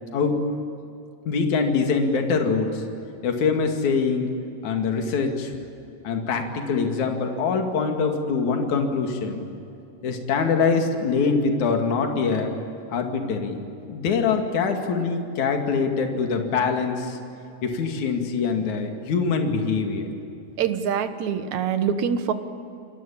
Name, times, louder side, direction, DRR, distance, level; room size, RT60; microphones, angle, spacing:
voice 1, 1.3-2.8 3.2-4.3 4.6-5.5 6.0-9.5 10.0-12.5 12.9-13.6 13.9-17.2 17.6-20.1, left 5 dB, 60° left, 3 dB, 3.6 m, -24 dB
voice 2, 20.6-22.3, right 7 dB, 65° right, 9 dB, 2.4 m, -24 dB
28.5 x 21.5 x 8.8 m, 2.8 s
omnidirectional pair, 4.0 m